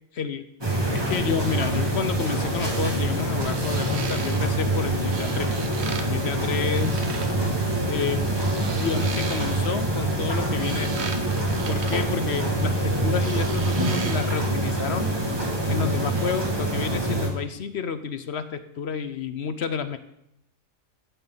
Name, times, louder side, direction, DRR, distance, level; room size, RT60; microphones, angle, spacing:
voice 1, 0.1-0.5 0.9-5.5 5.9-7.1 7.9-8.3 8.8-11.1 11.7-15.1 15.7-20.0, left 6 dB, 60° left, 11 dB, 0.9 m, -30 dB
sound 1, 0.6-17.3, right 1 dB, 20° right, 2.0 m, -25 dB
sound 2, 1.4-1.7 3.3-4.4 5.1-6.1 6.3-7.4 8.2-9.8 10.3-12.8 13.2-14.5 14.8-14.9, right 5 dB, 55° right, 1.2 m, -37 dB
15.0 x 9.3 x 4.0 m, 0.79 s
omnidirectional pair, 1.4 m